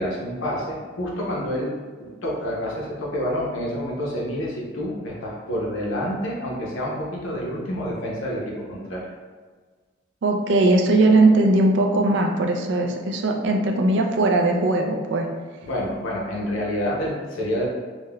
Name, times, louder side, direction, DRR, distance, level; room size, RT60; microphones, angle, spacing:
voice 1, 0.0-1.7 2.0-9.0 15.6-17.7, equal, 85° left, -4 dB, 0.6 m, -28 dB
voice 2, 10.2-15.3, right 2 dB, 65° right, 2 dB, 0.3 m, -19 dB
3.6 x 2.1 x 2.2 m, 1.4 s
head